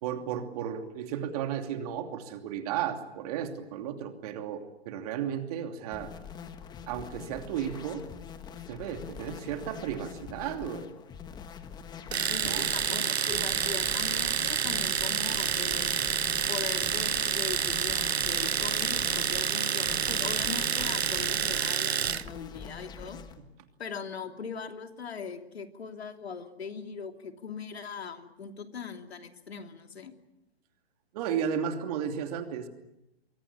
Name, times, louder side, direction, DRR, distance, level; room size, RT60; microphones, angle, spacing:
voice 1, 0.0-6.1 6.9-8.0 8.7-10.9 12.4-12.7 31.1-32.7, right 8 dB, 35° right, 6 dB, 2.9 m, -34 dB
sound 1, 5.9-23.4, left 7 dB, 15° left, 1.4 m, -44 dB
Domestic sounds home sounds, 12.1-22.3, right 7 dB, 80° right, 1.1 m, -28 dB
voice 2, 12.3-15.9 16.5-23.2 23.8-30.2, left 6 dB, 75° left, 6 dB, 3.0 m, -40 dB
25.0 x 23.0 x 8.6 m, 0.88 s
hypercardioid pair, 140°, 32 cm